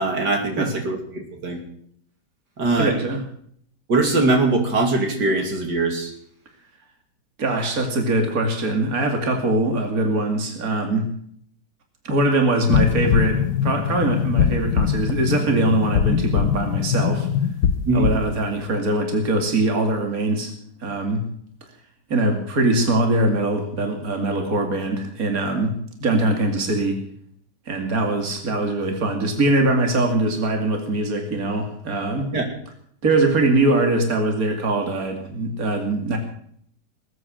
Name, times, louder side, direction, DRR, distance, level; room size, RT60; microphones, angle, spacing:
voice 1, 0.0-1.6 2.6-3.0 3.9-6.1 17.9-18.1 32.3-32.5, right 2 dB, 80° right, 3 dB, 3.3 m, -21 dB
voice 2, 2.8-3.2 7.4-11.1 12.0-17.3 17.9-20.5 20.8-21.2 22.1-25.7 26.0-27.0 27.7-32.3 33.0-36.2, right 2 dB, 60° right, 4 dB, 2.9 m, -22 dB
sound 1, 12.7-18.3, left 8 dB, 65° left, 1.3 m, -22 dB
20.0 x 9.7 x 6.3 m, 0.65 s
omnidirectional pair, 1.8 m